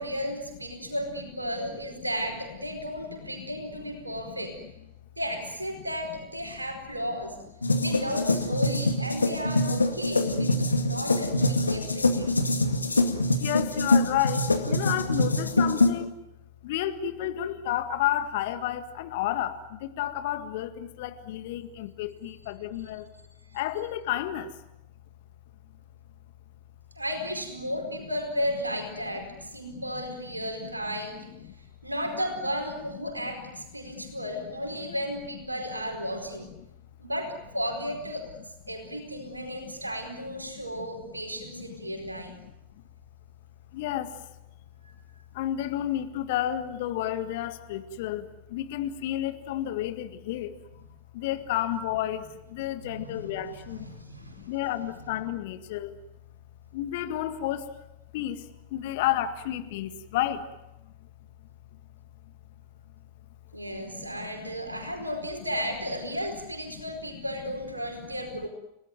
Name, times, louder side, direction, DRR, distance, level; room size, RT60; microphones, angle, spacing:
voice 1, 0.0-4.5 5.2-7.4 7.8-12.3 26.9-31.3 31.8-36.5 37.0-38.4 38.7-42.3 53.0-54.5 63.5-68.5, equal, 85° right, 5 dB, 4.6 m, -34 dB
voice 2, 4.1-4.5 10.2-10.6 10.9-11.4 11.9-12.0 12.3-12.4 13.4-16.2 16.6-23.1 23.5-24.6 29.8-30.7 31.2-31.5 33.8-34.2 39.2-39.8 40.8-41.2 41.6-42.5 43.7-44.2 45.3-50.8 51.1-56.0 56.7-57.7 58.1-60.4 60.8-60.9 63.8-64.9 66.7-66.8 67.1-67.2 68.0-68.4, left 12 dB, 50° left, 10 dB, 1.8 m, -32 dB
sound 1, 7.6-15.9, left 2 dB, 80° left, 2.1 m, -24 dB
30.0 x 18.0 x 9.4 m, 0.89 s
figure-of-eight pair, 90°, 0 cm